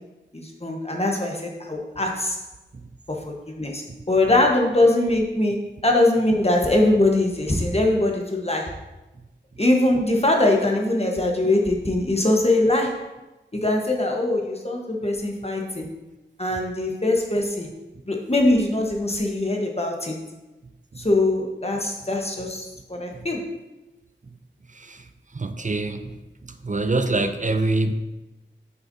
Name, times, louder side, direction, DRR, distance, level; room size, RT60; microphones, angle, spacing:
voice 1, 0.3-2.4 3.1-8.8 9.6-13.1 13.5-15.9 16.4-17.7 18.0-20.2 21.0-23.5, left 2 dB, 30° left, 1 dB, 1.2 m, -22 dB
voice 2, 24.7-25.0 25.3-26.2 26.6-27.9, right 2 dB, 40° right, 9 dB, 0.5 m, -25 dB
8.8 x 5.8 x 2.8 m, 1.0 s
wide cardioid pair, 40°, 20 cm